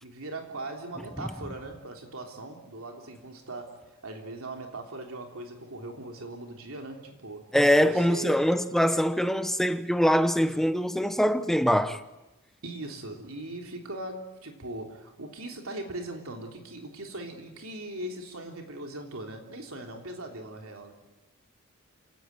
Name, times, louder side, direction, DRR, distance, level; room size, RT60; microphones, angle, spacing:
voice 1, 0.0-7.5 7.8-8.4 12.6-20.9, right 2 dB, 70° right, 3.4 m, -40 dB
voice 2, 7.5-12.0, equal, ahead, 0.9 m, -23 dB
28.5 x 18.0 x 9.4 m
head